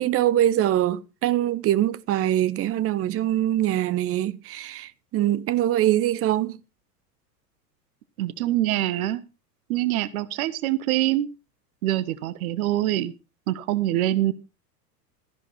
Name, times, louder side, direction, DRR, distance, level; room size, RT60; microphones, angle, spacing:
voice 1, 0.0-6.6, right 12 dB, 30° right, 0.9 m, -23 dB
voice 2, 8.2-9.2 9.7-11.3 11.8-13.1 13.5-14.3, right 14 dB, 55° right, 1.2 m, -24 dB
14.0 x 11.0 x 4.2 m
figure-of-eight pair, 90°, 50 cm